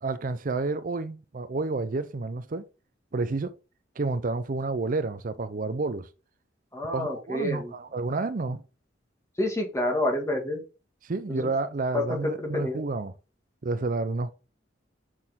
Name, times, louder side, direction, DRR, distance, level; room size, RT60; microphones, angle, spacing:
voice 1, 0.0-2.7 3.1-3.5 4.0-6.1 6.9-8.6 11.0-13.1 13.6-14.3, right 3 dB, 45° right, 0.5 m, -30 dB
voice 2, 6.7-7.7 9.4-10.6 11.3-11.5 11.9-12.8, left 1 dB, 15° left, 1.8 m, -28 dB
6.4 x 6.2 x 3.6 m
head